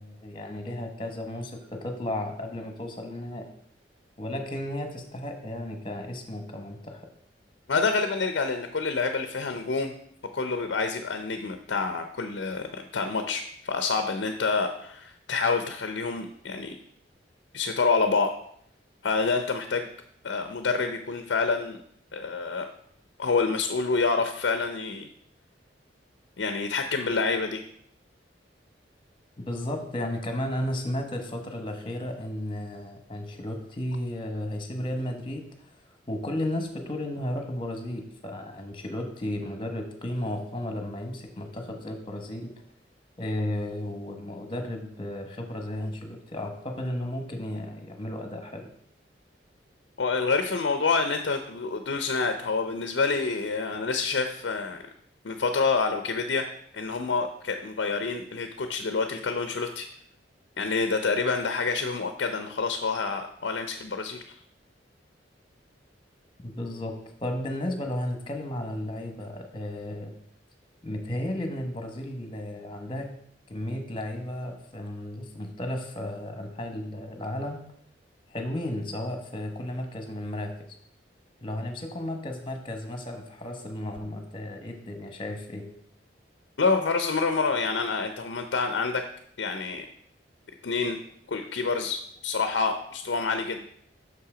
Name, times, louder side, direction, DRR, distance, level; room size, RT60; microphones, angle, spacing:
voice 1, 0.0-3.5 4.2-7.1 29.4-35.8 36.1-42.5 43.2-48.7 66.4-70.1 70.8-73.1 73.5-77.6 78.3-80.5 81.4-85.7, left 1 dB, 30° left, 5 dB, 1.2 m, -34 dB
voice 2, 7.7-9.9 10.3-16.8 17.5-18.3 19.0-19.9 20.2-21.8 22.1-22.7 23.2-25.1 26.4-27.6 50.0-54.8 55.2-56.5 56.7-59.9 60.6-64.3 86.6-89.0 89.4-89.9 90.6-91.0 91.3-93.6, left 4 dB, 75° left, 7 dB, 0.6 m, -27 dB
6.2 x 5.7 x 4.9 m, 0.67 s
head